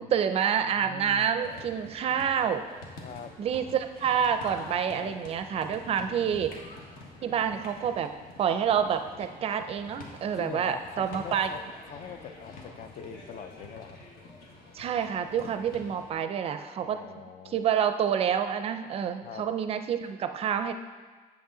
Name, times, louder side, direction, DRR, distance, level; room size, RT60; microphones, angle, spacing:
voice 1, 0.0-2.6 3.4-6.5 7.2-8.1 8.4-11.5 14.7-17.0 17.5-20.7, right 8 dB, 40° right, 9 dB, 0.4 m, -28 dB
voice 2, 0.7-1.3 2.9-3.3 4.9-5.1 6.0-6.5 10.3-11.6 11.9-14.0 16.8-17.6 19.2-19.4, left 7 dB, 45° left, 9 dB, 0.4 m, -43 dB
sound 1, 1.4-16.1, left 3 dB, 65° left, 1.3 m, -47 dB
8.2 x 6.8 x 3.8 m, 1.5 s
cardioid pair, 170°, 16 cm